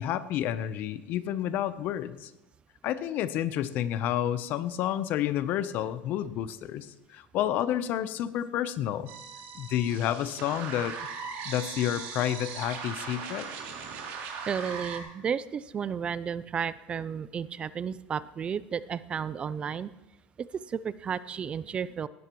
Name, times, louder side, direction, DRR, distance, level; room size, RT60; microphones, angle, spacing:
voice 1, 0.0-2.3 2.8-9.1 9.5-10.9 11.4-13.5, left 11 dB, 55° left, 14 dB, 0.8 m, -30 dB
sound 1, 9.1-15.0, right 6 dB, 65° right, 3.1 m, -39 dB
voice 2, 14.5-19.9 20.4-22.1, right 7 dB, 30° right, 17 dB, 0.4 m, -33 dB
17.5 x 12.5 x 3.1 m, 0.98 s
supercardioid pair, 130°, 4 cm